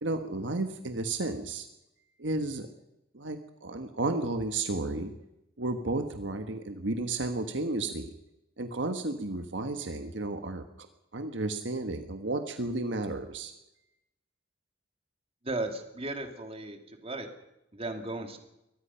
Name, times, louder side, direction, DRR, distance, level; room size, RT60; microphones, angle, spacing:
voice 1, 0.0-1.7 2.2-2.7 3.1-5.1 5.6-8.1 8.6-10.6 11.1-13.5, right 2 dB, 70° right, 7 dB, 1.5 m, -32 dB
voice 2, 15.4-17.3 17.7-18.4, right 2 dB, 30° right, 5 dB, 2.6 m, -36 dB
23.5 x 19.5 x 5.8 m, 0.89 s
head